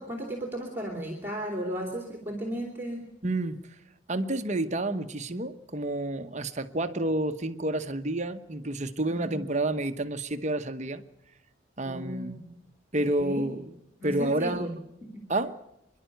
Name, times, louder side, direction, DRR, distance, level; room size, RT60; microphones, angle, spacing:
voice 1, 0.0-3.0 9.1-9.4 11.8-12.3 13.0-13.4 14.0-14.7 15.1-15.2, equal, 10° right, 1 dB, 2.9 m, -35 dB
voice 2, 3.2-3.6 4.1-11.0 11.8-12.5 12.9-13.8 14.0-14.8 15.3-15.5, right 1 dB, 35° right, 9 dB, 1.0 m, -29 dB
26.0 x 11.5 x 9.2 m, 0.86 s
head